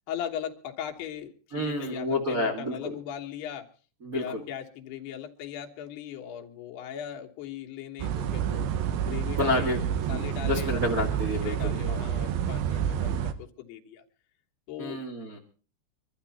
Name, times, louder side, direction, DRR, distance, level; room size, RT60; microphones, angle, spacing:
voice 1, 0.1-3.7 4.1-8.7 9.0-9.7 10.1-11.1 11.4-14.0 14.7-15.0, left 10 dB, 75° left, 2 dB, 3.4 m, -38 dB
voice 2, 1.5-2.9 4.0-4.4 9.4-12.0 14.8-15.4, left 1 dB, 35° right, -1 dB, 1.5 m, -30 dB
sound 1, 8.0-13.3, right 9 dB, 70° right, 2.8 m, -29 dB
23.5 x 12.5 x 4.2 m, 0.38 s
omnidirectional pair, 4.8 m